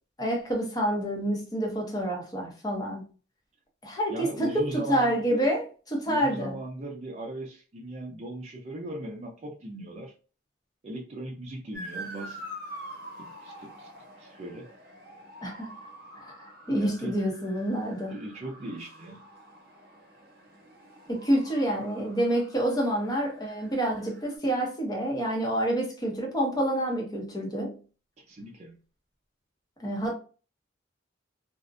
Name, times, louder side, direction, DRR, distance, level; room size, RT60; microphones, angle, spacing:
voice 1, 0.2-3.0 3.8-6.6 15.4-15.7 16.2-18.2 21.1-27.8 29.8-30.1, right 1 dB, 20° left, 0.7 m, -28 dB
voice 2, 4.1-5.4 6.1-10.1 10.8-12.4 13.2-13.9 14.2-14.7 16.8-17.1 18.1-19.2 28.3-28.8, right 1 dB, 35° right, 0.5 m, -38 dB
Motor vehicle (road) / Siren, 11.7-24.4, right 1 dB, 50° right, 0.8 m, -46 dB
2.5 x 2.0 x 2.4 m
head